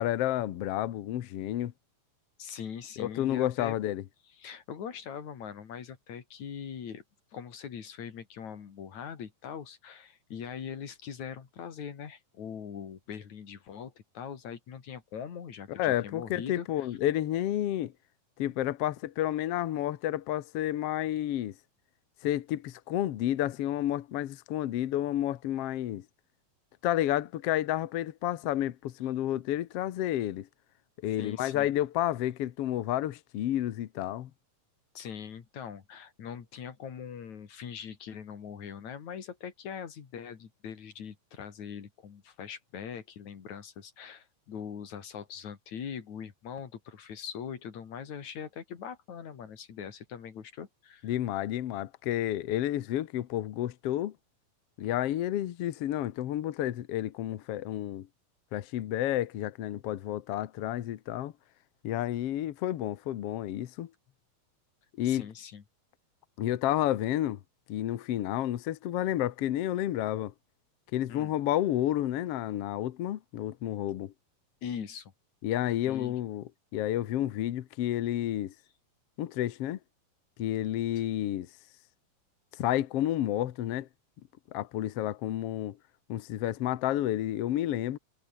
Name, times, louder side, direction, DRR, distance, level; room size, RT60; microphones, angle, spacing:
voice 1, 0.0-1.7 3.0-4.0 15.7-17.9 18.4-21.5 22.2-26.0 26.8-30.5 31.0-34.3 51.0-54.1 54.8-58.1 58.5-61.3 61.8-63.9 65.0-65.3 66.4-67.4 67.7-70.3 70.9-74.1 75.4-76.4 76.7-78.5 79.2-79.8 80.4-81.5 82.5-83.9 84.5-85.8 86.1-88.0, left 13 dB, 75° left, 1.3 m, -30 dB
voice 2, 2.4-3.8 4.4-7.0 7.3-16.9 31.2-31.7 35.0-51.1 65.0-65.6 71.1-71.3 74.6-75.1 75.9-76.2, left 7 dB, 55° left, 3.7 m, -42 dB
omnidirectional pair, 4.3 m